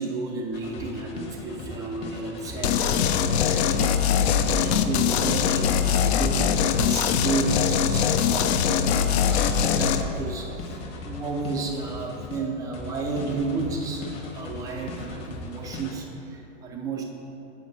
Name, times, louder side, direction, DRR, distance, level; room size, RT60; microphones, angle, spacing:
voice 1, 0.0-10.8 11.0-17.0, right 4 dB, 10° right, 1 dB, 0.3 m, -32 dB
sound 1, 0.5-12.4 12.7-15.9, left 2 dB, 40° left, 1.2 m, -38 dB
sound 2, 2.6-10.0, left 8 dB, 60° left, 0.5 m, -22 dB
8.6 x 5.1 x 4.0 m, 2.9 s
hypercardioid pair, 120°, 38 cm